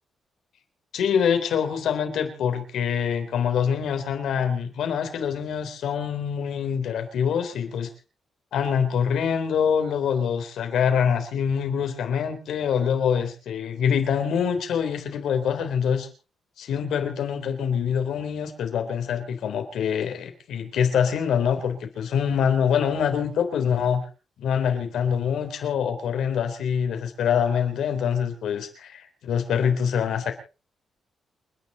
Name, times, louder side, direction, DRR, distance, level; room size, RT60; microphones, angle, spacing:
voice 1, 0.9-7.9 8.5-16.1 16.6-24.0 24.4-30.3, left 7 dB, 80° left, 7 dB, 3.6 m, -25 dB
28.5 x 10.5 x 4.1 m, 0.35 s
cardioid pair, 130°, 0 cm